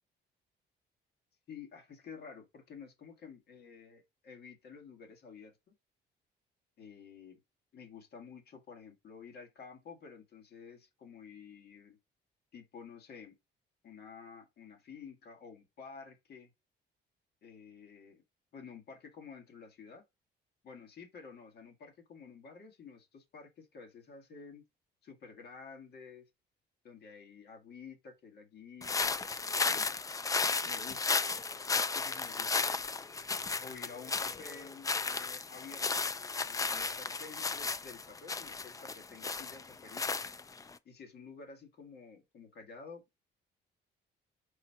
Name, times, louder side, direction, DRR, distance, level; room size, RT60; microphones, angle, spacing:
voice 1, 1.5-5.7 6.8-7.4 7.7-12.0 12.5-13.4 13.8-16.5 17.4-18.2 18.5-20.0 20.6-24.6 25.0-26.3 26.8-29.9 30.6-31.2 31.7-32.7 33.6-36.0 36.4-40.2 40.8-43.2, left 5 dB, 60° left, 2.1 m, -51 dB
sound 1, 28.8-40.7, left 4 dB, 20° left, 0.4 m, -34 dB
4.7 x 4.3 x 4.6 m
cardioid pair, 125°, 19 cm